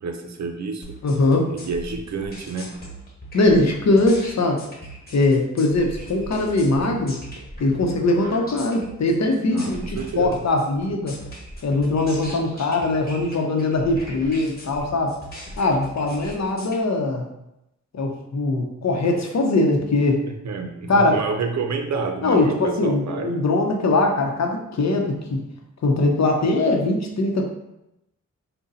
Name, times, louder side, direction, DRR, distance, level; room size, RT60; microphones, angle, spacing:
voice 1, 0.0-1.0 1.5-2.7 9.5-10.4 20.4-23.3, right 4 dB, 65° right, 5 dB, 0.6 m, -29 dB
sound 1, 0.8-16.8, equal, 30° left, 1.2 m, -39 dB
voice 2, 1.0-1.5 3.3-4.6 5.1-7.2 7.6-11.1 11.6-15.2 15.6-17.2 17.9-20.2 20.9-21.2 22.2-25.4 25.8-27.4, left 2 dB, 60° left, 2 dB, 0.7 m, -21 dB
3.9 x 2.2 x 3.9 m, 0.87 s
cardioid pair, 70°, 30 cm